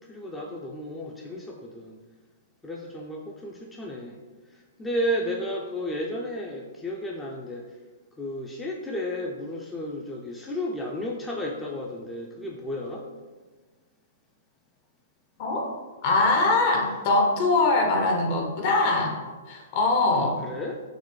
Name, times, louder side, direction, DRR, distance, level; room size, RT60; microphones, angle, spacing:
voice 1, 0.0-2.0 2.6-4.2 4.5-7.6 8.2-13.0 20.1-20.8, equal, 10° left, -2 dB, 0.3 m, -33 dB
voice 2, 16.0-19.2 19.5-20.4, left 3 dB, 50° left, 2 dB, 0.6 m, -22 dB
3.9 x 2.1 x 3.0 m, 1.4 s
hypercardioid pair, 120°, 0 cm